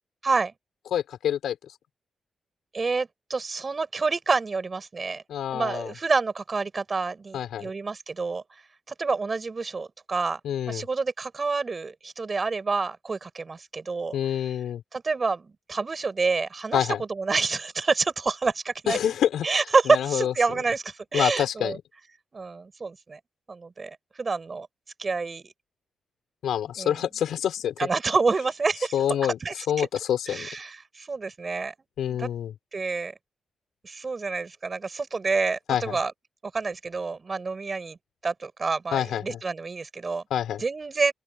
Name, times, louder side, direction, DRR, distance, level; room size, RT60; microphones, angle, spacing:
voice 1, 0.2-0.5 2.7-5.2 5.5-8.4 8.9-10.4 10.7-14.2 14.9-19.0 19.4-21.8 22.3-23.2 23.5-24.7 25.0-25.5 26.8-27.0 27.8-28.9 29.4-29.9 30.3-31.7 32.1-32.3 32.7-33.1 33.8-36.1 36.5-38.0 38.2-40.2 40.6-41.1, right 4 dB, 45° right, 7.0 m, -28 dB
voice 2, 0.9-1.6 5.3-5.9 7.3-7.7 10.4-10.8 14.1-14.8 16.7-17.0 18.9-19.5 19.9-20.3 21.1-21.8 26.4-27.9 28.9-29.4 29.7-30.5 32.0-32.5 35.7-36.0 38.9-39.4 40.3-40.6, left 10 dB, 80° left, 6.0 m, -27 dB
open air
supercardioid pair, 45°, 0 cm